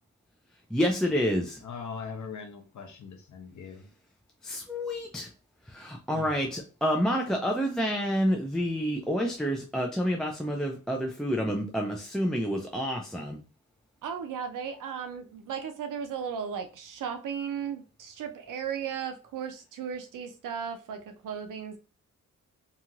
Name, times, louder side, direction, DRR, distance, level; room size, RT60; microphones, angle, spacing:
voice 1, 0.7-1.6 4.4-5.3 5.7-13.4, equal, ahead, 0.4 m, -28 dB
voice 2, 1.6-3.9 6.1-6.3, left 5 dB, 65° left, 0.8 m, -41 dB
voice 3, 14.0-21.8, right 7 dB, 80° right, 0.5 m, -36 dB
3.0 x 2.7 x 2.4 m
wide cardioid pair, 120°, 31 cm